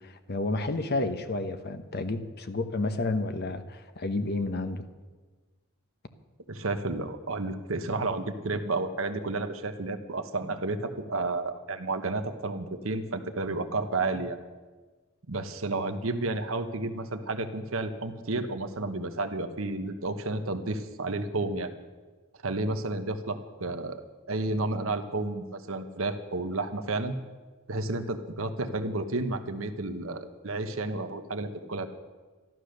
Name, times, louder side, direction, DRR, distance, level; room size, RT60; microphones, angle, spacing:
voice 1, 0.0-4.8, left 2 dB, 50° left, 9 dB, 1.0 m, -31 dB
voice 2, 6.5-14.4 15.3-21.7 22.4-27.2 27.7-31.9, right 2 dB, 70° right, 8 dB, 1.1 m, -31 dB
13.5 x 12.5 x 6.6 m, 1.3 s
head